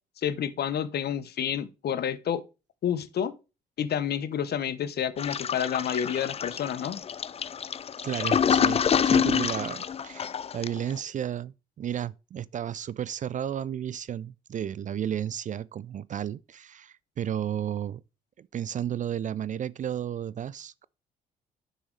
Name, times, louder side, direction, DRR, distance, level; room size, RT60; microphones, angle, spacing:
voice 1, 0.2-2.4 2.8-3.3 3.8-7.0, left 9 dB, 50° left, 1.0 m, -29 dB
Toilet flush, 5.2-10.9, left 7 dB, 30° left, 0.5 m, -27 dB
voice 2, 8.0-18.0 18.4-20.9, right 10 dB, 35° right, 0.4 m, -33 dB
9.6 x 6.2 x 3.3 m
hypercardioid pair, 50°, 21 cm